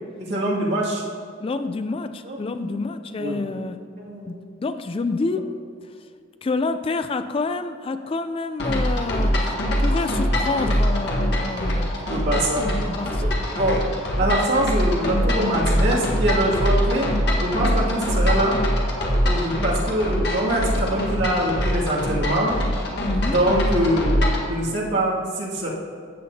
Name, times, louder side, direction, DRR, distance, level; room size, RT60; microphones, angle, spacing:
voice 1, 0.2-1.0 2.2-2.8 3.2-3.7 4.0-4.5 12.1-12.7 13.2-13.3 13.6-13.8 14.2-17.1 17.4-18.6 19.3-22.6 23.3-25.7, right 1 dB, 65° right, -5 dB, 2.2 m, -23 dB
voice 2, 1.4-3.8 4.2-5.5 6.4-9.5 9.8-11.9 12.3-12.5 12.7-13.4 17.6-17.8 23.0-23.4, left 3 dB, 30° left, 10 dB, 0.3 m, -28 dB
sound 1, 8.6-24.5, equal, 60° left, 1.5 m, -23 dB
14.0 x 7.7 x 2.8 m, 2.2 s
head